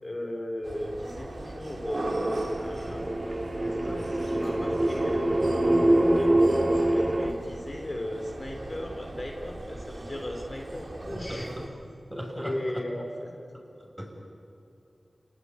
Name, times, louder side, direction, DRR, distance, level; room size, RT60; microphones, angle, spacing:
voice 1, 0.0-3.2 3.6-11.5 12.4-13.3, left 1 dB, 35° left, 1 dB, 3.3 m, -37 dB
sound 1, 0.6-11.7, right 1 dB, 55° right, 3.0 m, -37 dB
sound 2, 2.2-7.3, right 1 dB, 30° right, 2.3 m, -25 dB
voice 2, 11.1-11.6 12.1-12.8 13.8-14.1, equal, 10° right, 0 dB, 6.9 m, -37 dB
29.5 x 19.0 x 9.6 m, 2.6 s
wide cardioid pair, 65°, 0 cm